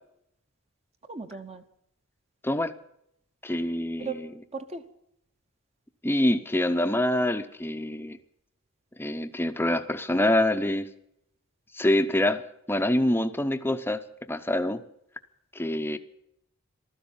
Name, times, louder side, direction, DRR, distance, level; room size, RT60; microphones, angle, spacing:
voice 1, 1.1-1.6 4.0-4.2 4.5-4.8, right 4 dB, 30° right, 7 dB, 0.9 m, -36 dB
voice 2, 3.4-4.3 6.0-8.2 9.0-10.9 11.7-12.4 12.7-14.0 14.3-14.8 15.5-16.0, left 1 dB, 10° left, 10 dB, 0.7 m, -25 dB
15.0 x 13.0 x 7.1 m, 0.75 s
head